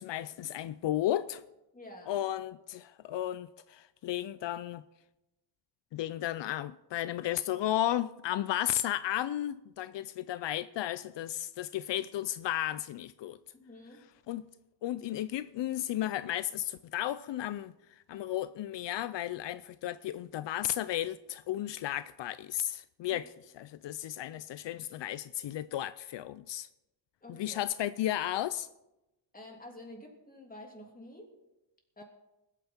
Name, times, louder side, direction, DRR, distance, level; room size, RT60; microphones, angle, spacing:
voice 1, 0.0-1.4 2.1-4.8 5.9-13.4 14.3-14.5 14.8-17.7 18.1-23.3 23.6-26.7 27.3-28.7, left 12 dB, 80° left, 0.5 m, -34 dB
voice 2, 1.7-2.2 13.5-14.1 23.1-23.2 27.2-27.6 29.3-31.3 32.0-32.1, left 1 dB, 20° left, 3.1 m, -49 dB
20.5 x 9.0 x 4.4 m
wide cardioid pair, 105°, 42 cm